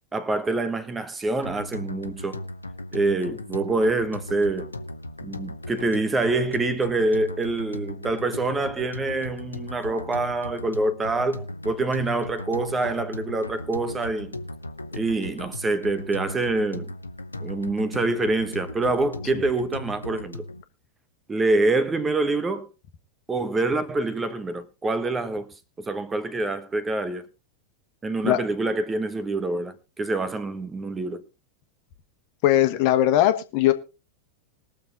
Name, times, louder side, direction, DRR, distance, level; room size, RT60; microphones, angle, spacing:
voice 1, 0.1-2.4 2.9-4.7 5.2-14.3 14.9-16.9 17.4-20.4 21.3-22.7 23.3-25.5 25.8-27.3 28.0-31.2, right 2 dB, 15° right, 1.1 m, -26 dB
sound 1, 1.4-20.6, left 1 dB, 80° left, 1.0 m, -37 dB
voice 2, 32.4-33.7, left 13 dB, 45° left, 1.5 m, -19 dB
21.5 x 7.2 x 3.9 m
figure-of-eight pair, 90°, 0 cm